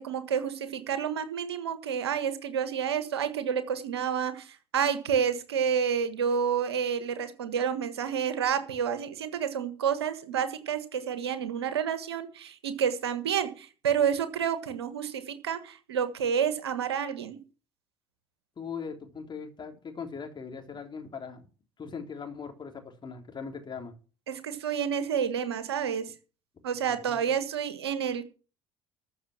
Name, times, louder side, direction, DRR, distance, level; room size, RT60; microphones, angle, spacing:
voice 1, 0.0-17.4 24.3-26.1 26.6-28.2, right 7 dB, 85° right, 11 dB, 1.5 m, -29 dB
voice 2, 18.6-21.5 21.8-23.9 26.9-27.3, left 5 dB, 35° left, 3 dB, 3.8 m, -40 dB
14.0 x 6.7 x 7.4 m, 0.36 s
hypercardioid pair, 55°, 13 cm